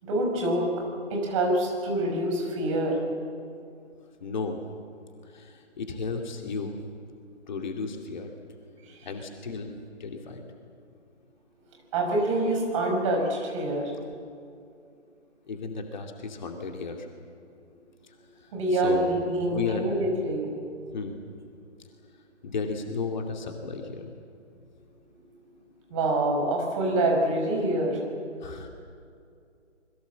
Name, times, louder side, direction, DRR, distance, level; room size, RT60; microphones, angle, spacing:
voice 1, 0.0-0.7 1.1-3.0 11.9-13.9 18.5-20.5 25.9-28.0, right 1 dB, 25° right, 1 dB, 5.8 m, -26 dB
voice 2, 4.2-4.6 5.2-6.8 7.5-8.3 9.0-9.7 10.0-10.4 15.5-17.1 18.0-19.1 19.5-19.9 20.9-21.2 22.4-24.1 28.4-28.7, left 4 dB, 40° left, 3 dB, 2.5 m, -34 dB
28.0 x 21.5 x 7.6 m, 2.4 s
figure-of-eight pair, 145°, 36 cm